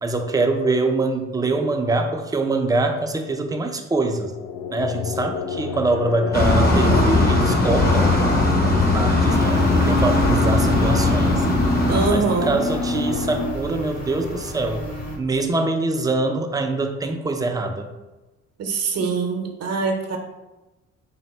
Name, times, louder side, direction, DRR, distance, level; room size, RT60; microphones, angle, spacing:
voice 1, 0.0-4.3 4.7-8.2 8.9-11.5 12.1-14.8 15.2-17.9, right 2 dB, 15° right, 4 dB, 0.4 m, -24 dB
sound 1, 4.2-13.5, left 5 dB, 80° left, 0.4 m, -27 dB
sound 2, 6.3-12.1, left 2 dB, 30° left, 0.8 m, -19 dB
sound 3, 9.3-15.2, equal, 55° left, 1.2 m, -33 dB
voice 2, 11.9-12.5 18.6-20.2, right 4 dB, 55° right, 3 dB, 0.7 m, -23 dB
4.3 x 2.1 x 4.2 m, 1.1 s
cardioid pair, 90°, 30 cm